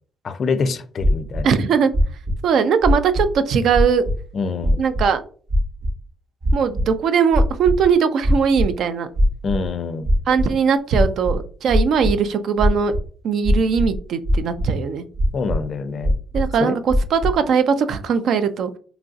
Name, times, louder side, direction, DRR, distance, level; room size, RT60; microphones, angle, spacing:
voice 1, 0.2-1.5 4.3-4.8 9.4-10.1 15.3-16.2 16.6-16.8, left 4 dB, 50° left, 11 dB, 0.4 m, -25 dB
sound 1, 1.0-1.4 1.9-2.4 2.8-3.4 3.7-4.2 4.6-5.1 5.5-5.9 6.4-6.9 7.3-7.8 8.2-8.7 9.1-9.7 10.0-10.5 10.9-12.1 12.6-13.0 13.4-14.0 14.2-14.7 15.1-15.6 16.0-16.5 16.9-17.3, equal, 50° right, 0.9 m, -19 dB
voice 2, 1.4-1.9 2.4-4.0 4.8-5.2 6.5-9.1 10.3-12.9 13.2-15.0 16.3-18.7, right 6 dB, 70° right, 11 dB, 0.3 m, -20 dB
3.0 x 2.6 x 2.4 m, 0.42 s
cardioid pair, 90°, 0 cm